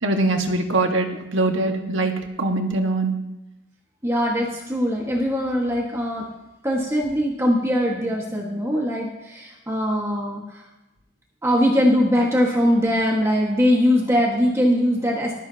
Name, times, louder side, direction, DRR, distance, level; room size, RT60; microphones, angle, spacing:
voice 1, 0.0-3.1, right 2 dB, 80° right, 3 dB, 1.7 m, -22 dB
voice 2, 4.0-6.2 6.6-10.6 11.4-15.4, equal, 15° right, -2 dB, 1.7 m, -21 dB
19.5 x 13.0 x 2.9 m, 0.98 s
head